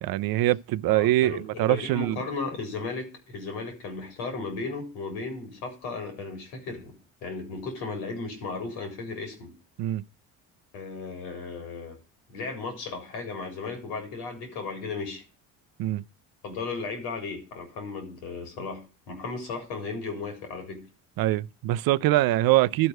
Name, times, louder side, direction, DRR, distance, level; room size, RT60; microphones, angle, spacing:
voice 1, 0.0-2.2 9.8-10.0 15.8-16.0 21.2-22.9, right 16 dB, 65° right, 0.5 m, -23 dB
voice 2, 0.9-6.9 7.2-9.5 10.7-12.0 12.3-15.2 16.4-20.8, left 4 dB, 85° left, 3.9 m, -35 dB
12.0 x 4.7 x 7.7 m
supercardioid pair, 70°, 39 cm